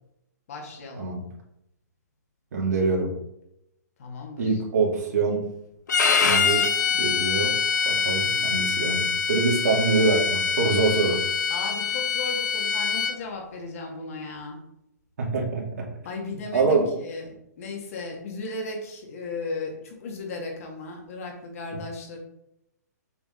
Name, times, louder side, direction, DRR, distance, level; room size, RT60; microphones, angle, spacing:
voice 1, 0.5-1.1 4.0-4.6 11.5-14.6 16.0-22.2, left 3 dB, 50° left, 1 dB, 2.0 m, -36 dB
voice 2, 2.5-3.1 4.4-5.4 6.1-6.6 7.0-7.5 7.9-11.2 15.2-15.9 16.5-16.8, right 4 dB, 65° right, -1 dB, 2.3 m, -24 dB
Bowed string instrument, 5.9-13.1, left 5 dB, 80° left, 1.0 m, -24 dB
6.9 x 3.9 x 3.8 m, 0.79 s
hypercardioid pair, 150°, 10 cm